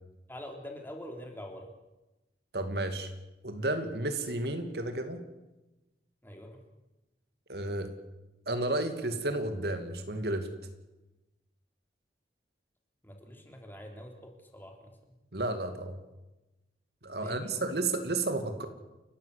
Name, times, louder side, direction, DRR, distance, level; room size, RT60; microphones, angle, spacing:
voice 1, 0.3-1.7 6.2-6.6 13.0-15.0 17.2-17.7, equal, 10° left, 2 dB, 3.5 m, -45 dB
voice 2, 2.5-3.1 3.4-5.2 7.5-7.9 8.5-10.5 15.3-16.0 17.0-18.7, right 2 dB, 65° right, 8 dB, 2.5 m, -32 dB
30.0 x 14.0 x 8.4 m, 1.0 s
head